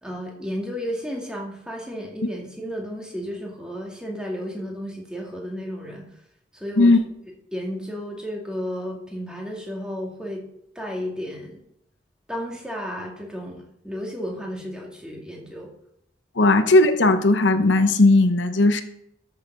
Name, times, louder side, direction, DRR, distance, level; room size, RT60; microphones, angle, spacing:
voice 1, 0.0-6.1 6.5-6.9 7.5-10.4 10.8-11.6 12.3-15.7 16.4-16.6, equal, 5° right, -1 dB, 2.2 m, -33 dB
voice 2, 16.4-18.8, left 2 dB, 70° left, 9 dB, 0.9 m, -17 dB
13.0 x 6.9 x 5.3 m, 0.76 s
head